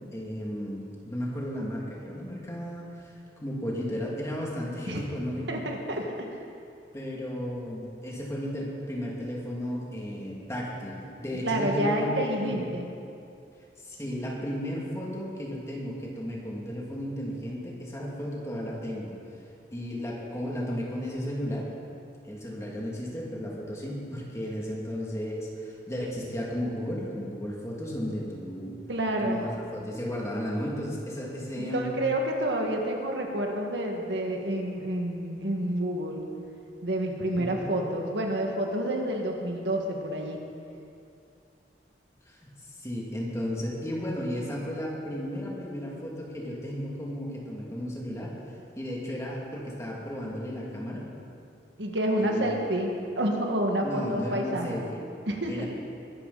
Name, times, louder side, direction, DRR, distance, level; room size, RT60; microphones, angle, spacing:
voice 1, 0.0-3.1 3.4-5.6 6.9-12.1 12.4-12.6 13.8-19.2 19.7-21.7 22.3-28.8 29.2-31.9 37.4-37.7 42.3-42.4 42.8-48.4 48.8-51.1 52.2-52.5 53.8-55.1 55.5-55.7, equal, 15° left, -4 dB, 2.6 m, -34 dB
voice 2, 5.5-6.4 11.4-12.9 28.9-29.4 31.6-36.2 36.8-40.4 51.8-54.8 55.3-55.6, right 1 dB, 80° right, 1 dB, 1.9 m, -29 dB
22.0 x 13.0 x 4.2 m, 2.5 s
head